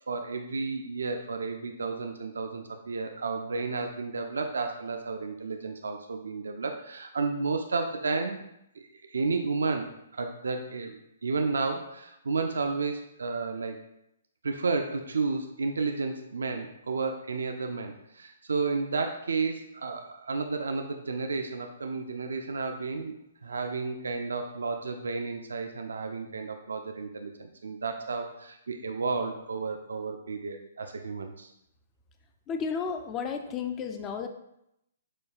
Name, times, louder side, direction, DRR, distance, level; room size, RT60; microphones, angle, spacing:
voice 1, 0.1-8.4 8.8-13.8 14.4-23.2 23.4-31.5, right 4 dB, 70° right, 4 dB, 0.3 m, -32 dB
voice 2, 32.5-34.3, left 6 dB, 25° left, 6 dB, 0.3 m, -32 dB
6.2 x 2.3 x 2.3 m, 0.81 s
figure-of-eight pair, 125°, 0 cm